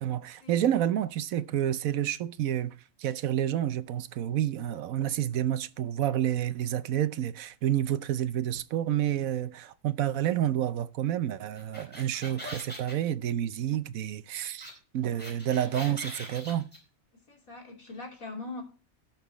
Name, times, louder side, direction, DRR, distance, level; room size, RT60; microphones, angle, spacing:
voice 1, 0.0-16.7, right 11 dB, 80° right, 1.1 m, -29 dB
sound 1, 11.5-12.9 14.6-14.7 15.0-16.8, equal, 5° left, 4.2 m, -42 dB
voice 2, 17.3-18.6, left 2 dB, 80° left, 3.3 m, -41 dB
18.0 x 6.0 x 3.1 m
omnidirectional pair, 1.4 m